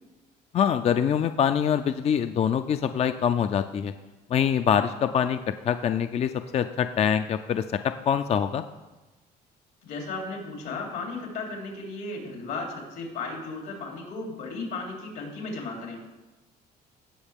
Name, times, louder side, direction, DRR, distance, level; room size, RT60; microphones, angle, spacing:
voice 1, 0.5-3.9 4.3-8.6, left 8 dB, 40° left, 10 dB, 0.4 m, -24 dB
voice 2, 9.8-16.0, left 3 dB, 80° left, 0 dB, 3.2 m, -35 dB
17.0 x 6.4 x 3.6 m, 1.1 s
cardioid pair, 110°, 17 cm